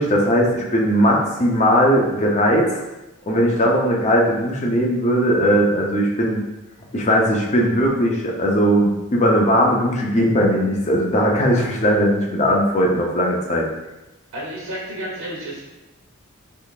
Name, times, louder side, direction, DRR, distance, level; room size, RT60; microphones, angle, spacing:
voice 1, 0.0-2.8 3.3-6.4 6.9-13.7, equal, 35° left, -1 dB, 0.5 m, -18 dB
voice 2, 14.3-15.6, right 1 dB, 80° right, -5 dB, 0.8 m, -31 dB
3.7 x 3.2 x 2.4 m, 1.0 s
head